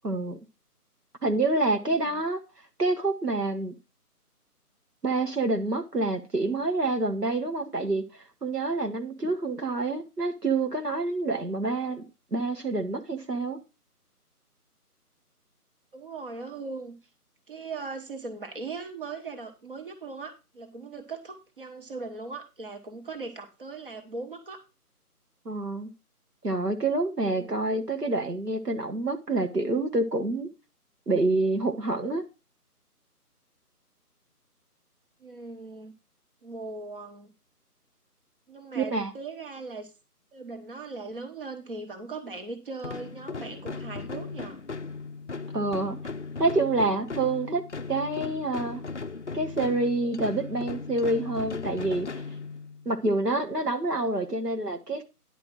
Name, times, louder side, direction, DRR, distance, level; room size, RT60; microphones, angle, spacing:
voice 1, 0.0-0.4 1.2-2.4 2.8-3.7 5.0-8.1 8.4-13.6 25.4-25.9 26.4-30.5 31.1-32.2 38.7-39.1 45.5-46.0 46.4-47.6 47.9-48.8 49.3-52.1 52.8-55.0, right 2 dB, 85° right, 1.8 m, -27 dB
voice 2, 1.8-2.2 15.9-17.0 17.5-24.6 27.3-27.6 35.2-35.9 36.4-37.3 38.5-39.9 40.3-44.6, right 3 dB, 35° right, 1.3 m, -39 dB
sound 1, 42.8-53.0, left 4 dB, 50° left, 0.5 m, -37 dB
10.5 x 4.7 x 6.2 m
figure-of-eight pair, 155°, 47 cm